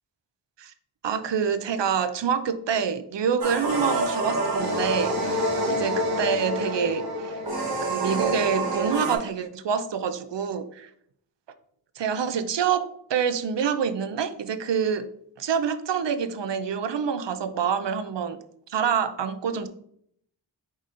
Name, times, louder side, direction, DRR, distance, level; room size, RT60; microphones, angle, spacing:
voice 1, 1.0-7.4 7.8-10.9 12.0-15.1 15.4-18.4 18.7-19.7, right 7 dB, 70° right, 12 dB, 0.5 m, -27 dB
sound 1, 3.4-9.2, right 1 dB, 55° right, 1.1 m, -27 dB
4.9 x 4.0 x 2.5 m, 0.67 s
wide cardioid pair, 45°, 46 cm